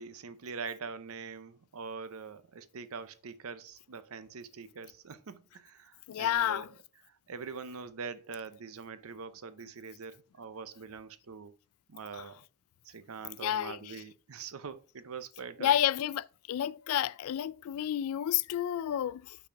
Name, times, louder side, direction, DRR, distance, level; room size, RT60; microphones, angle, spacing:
voice 1, 0.0-11.5 11.9-12.4 12.8-15.8, right 5 dB, 70° right, 0.6 m, -44 dB
voice 2, 6.1-6.7 12.1-12.3 13.4-13.9 15.6-19.4, left 11 dB, 70° left, 0.3 m, -30 dB
5.8 x 4.2 x 5.7 m
head